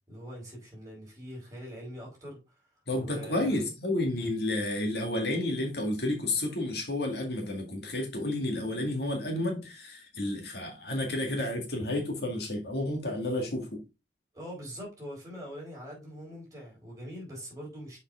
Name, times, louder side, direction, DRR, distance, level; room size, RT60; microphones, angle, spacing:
voice 1, 0.1-2.4 3.0-3.6 14.3-18.0, equal, 20° right, 4.0 m, -43 dB
voice 2, 2.9-13.8, left 1 dB, 65° left, 2.0 m, -31 dB
6.4 x 5.3 x 3.5 m
head